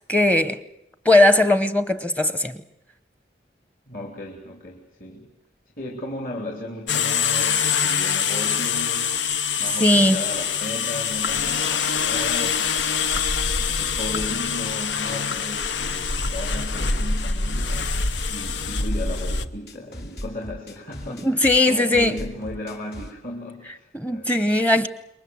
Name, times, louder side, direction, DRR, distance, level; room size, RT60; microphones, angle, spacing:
voice 1, 0.1-0.6 1.0-2.6 9.8-10.2 21.2-22.2 23.9-24.9, left 1 dB, 10° left, 0.9 m, -18 dB
voice 2, 3.9-5.3 5.8-9.1 9.6-13.3 13.6-17.9 18.3-24.3, left 1 dB, 50° left, 3.4 m, -35 dB
sound 1, 6.9-19.5, left 6 dB, 85° left, 1.0 m, -24 dB
sound 2, 14.1-15.3 15.7-17.3 17.7-23.1, equal, 65° left, 2.9 m, -39 dB
27.5 x 23.0 x 7.8 m
head